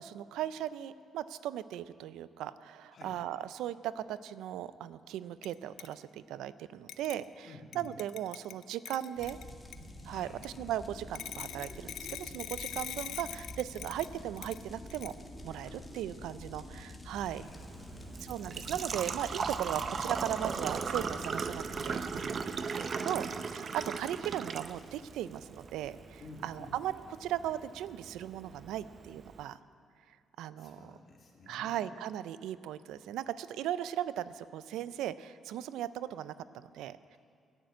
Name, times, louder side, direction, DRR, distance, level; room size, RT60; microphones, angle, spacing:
voice 1, 0.0-7.5 7.7-9.4 10.0-15.1 15.4-17.4 18.2-23.3 23.5-26.9 27.2-29.6 30.4-30.8 31.5-37.2, right 11 dB, 90° right, 15 dB, 0.4 m, -38 dB
sound 1, 5.4-5.5 5.8-5.9 6.9-7.3 7.7-9.8 10.4-10.5 11.2-14.6 14.9-15.1, left 10 dB, 75° left, 0.4 m, -43 dB
voice 2, 7.4-7.9 10.1-10.4 15.6-15.8 17.3-18.3 22.8-23.4 26.2-26.7 30.6-31.9, left 3 dB, 50° left, -1 dB, 2.7 m, -52 dB
sound 2, 9.2-22.3, left 1 dB, 15° left, 1.8 m, -48 dB
Engine / Trickle dribble / Fill (with liquid), 17.4-29.4, right 5 dB, 45° right, 0.6 m, -38 dB
10.5 x 9.0 x 9.4 m, 2.3 s
cardioid pair, 90°, 0 cm